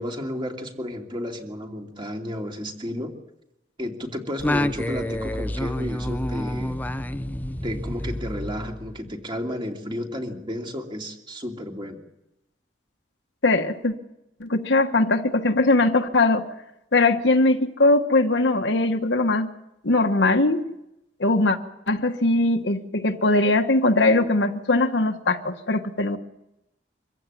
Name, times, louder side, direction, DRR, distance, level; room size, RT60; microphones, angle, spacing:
voice 1, 0.0-3.1 3.8-6.8 7.6-12.0, equal, 25° right, 2 dB, 2.8 m, -32 dB
Singing, 4.4-9.2, left 1 dB, 10° left, 0.7 m, -28 dB
voice 2, 13.4-13.9 14.4-16.4 16.9-19.5 19.8-20.6 21.2-21.6 21.9-26.2, left 2 dB, 75° left, 6 dB, 1.4 m, -20 dB
24.5 x 15.5 x 9.7 m, 0.90 s
head